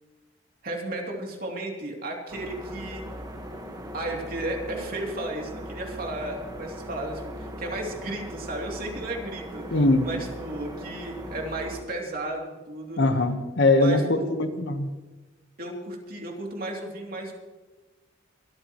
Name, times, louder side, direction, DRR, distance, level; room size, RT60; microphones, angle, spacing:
voice 1, 0.6-3.0 3.9-13.0 13.8-14.4 15.6-17.3, right 1 dB, 45° right, 0 dB, 2.9 m, -34 dB
sound 1, 2.3-11.8, equal, 20° right, 1.4 m, -39 dB
voice 2, 9.7-10.1 13.0-14.9, left 2 dB, 60° left, 7 dB, 1.2 m, -21 dB
23.5 x 13.5 x 3.1 m, 1.2 s
head